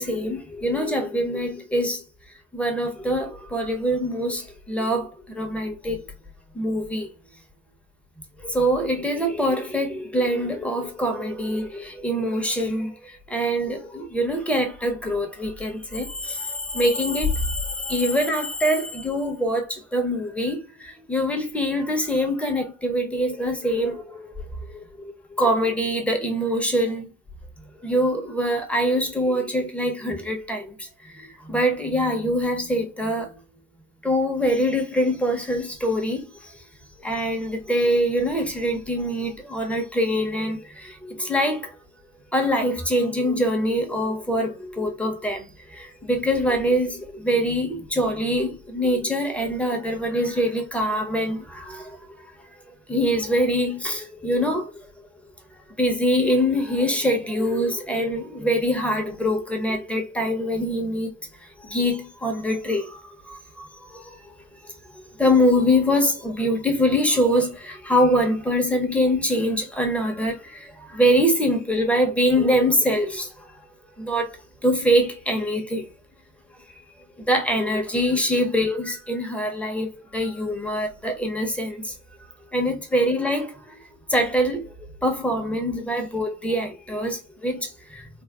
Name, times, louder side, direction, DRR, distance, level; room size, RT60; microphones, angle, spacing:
voice 1, 0.0-2.0 2.5-4.4 4.7-5.1 5.3-6.0 6.6-7.1 8.5-12.9 13.3-19.6 19.9-20.6 21.1-24.3 25.4-27.1 27.8-30.7 31.2-33.3 34.0-36.2 37.0-40.6 41.1-41.7 42.3-45.5 45.8-51.8 52.9-54.7 55.8-61.1 61.7-63.7 65.2-70.3 70.9-73.3 74.0-74.3 74.6-75.8 77.3-79.9 80.1-81.8 82.5-83.5 84.1-84.6 85.0-87.6 87.9-88.0, equal, 5° left, 0.7 m, -24 dB
3.5 x 2.3 x 2.3 m
hypercardioid pair, 65°, 43 cm